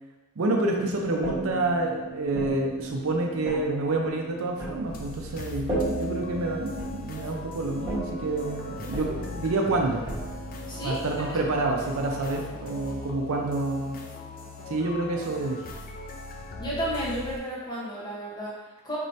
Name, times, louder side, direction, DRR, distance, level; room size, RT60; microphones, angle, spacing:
voice 1, 0.4-10.1 10.8-14.0 14.7-15.6, right 2 dB, 65° right, 1 dB, 0.5 m, -28 dB
sound 1, 0.7-11.1, right 2 dB, 15° right, 1.4 m, -36 dB
sound 2, 4.9-17.4, left 3 dB, 40° left, 0.4 m, -40 dB
voice 2, 10.7-11.0 11.3-11.4 16.6-19.0, equal, 20° left, -7 dB, 1.0 m, -32 dB
4.5 x 3.1 x 2.7 m, 1.1 s
head